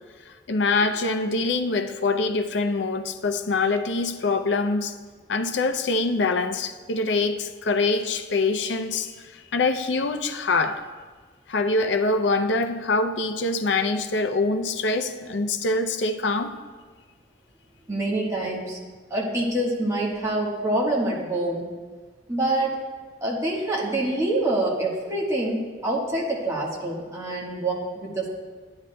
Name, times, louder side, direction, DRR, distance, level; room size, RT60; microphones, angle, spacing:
voice 1, 0.3-5.0 5.3-10.8 11.5-16.5, left 3 dB, 65° left, 8 dB, 0.5 m, -24 dB
voice 2, 17.9-18.8 19.1-21.7 22.3-22.8 23.2-28.3, right 1 dB, 15° right, -3 dB, 1.2 m, -26 dB
10.5 x 9.6 x 2.2 m, 1.4 s
head